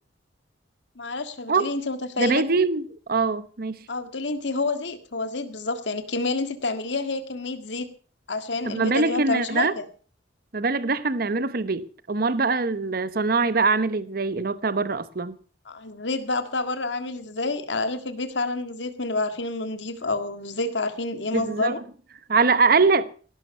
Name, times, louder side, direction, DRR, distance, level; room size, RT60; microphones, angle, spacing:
voice 1, 1.0-2.4 3.9-7.9 8.3-9.9 15.7-21.8, left 3 dB, 70° left, 1.8 m, -28 dB
voice 2, 2.2-3.8 8.6-9.8 10.5-15.4 21.3-21.7 22.3-23.1, right 4 dB, 50° right, 0.9 m, -23 dB
17.5 x 12.5 x 5.6 m
head